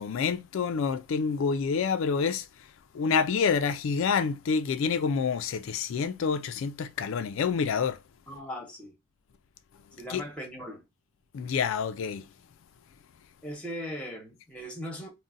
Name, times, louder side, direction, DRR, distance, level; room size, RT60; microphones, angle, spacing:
voice 1, 0.0-2.7 2.9-8.0 10.1-10.2 11.3-12.3, left 5 dB, 70° left, 0.3 m, -28 dB
voice 2, 8.3-8.9 10.0-10.9 13.4-15.1, equal, 5° left, 0.9 m, -39 dB
3.8 x 2.1 x 2.5 m
head